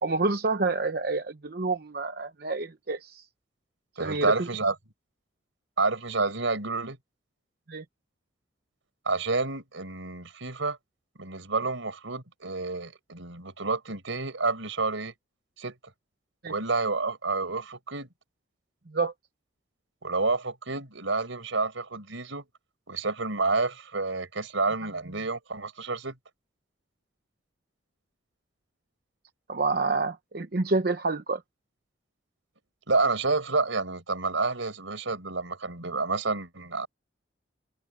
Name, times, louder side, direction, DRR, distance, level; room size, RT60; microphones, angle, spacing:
voice 1, 0.0-3.2 4.0-4.5 7.7-7.8 16.4-16.5 18.9-19.1 29.5-31.4, right 3 dB, 50° right, 0.8 m, -28 dB
voice 2, 4.0-4.7 5.8-7.0 9.0-10.8 11.2-15.1 15.6-15.8 16.4-18.1 20.0-22.4 22.9-26.1 32.9-36.9, right 3 dB, 85° right, 4.9 m, -29 dB
head